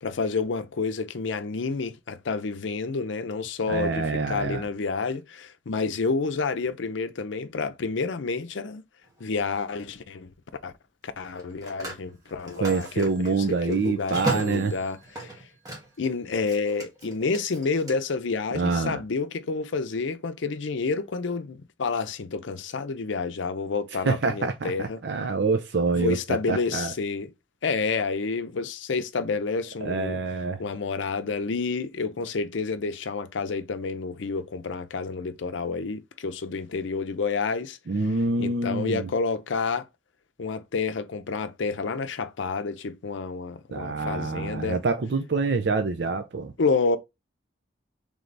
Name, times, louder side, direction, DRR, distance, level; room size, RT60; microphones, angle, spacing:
voice 1, 0.0-8.8 9.2-10.3 10.6-10.7 11.0-15.3 16.0-25.0 26.0-27.3 27.6-30.2 30.6-37.8 38.4-39.9 40.4-44.8 46.6-47.0, left 4 dB, 75° left, 0.5 m, -29 dB
voice 2, 3.7-4.6 12.6-14.7 18.5-19.0 24.1-24.7 25.0-26.2 26.5-26.9 29.8-30.6 37.9-39.0 43.7-46.5, right 4 dB, 60° right, 0.5 m, -26 dB
Telephone, 9.0-9.3 11.2-16.1 16.4-17.9, right 2 dB, 20° right, 1.5 m, -36 dB
3.4 x 3.3 x 3.9 m
head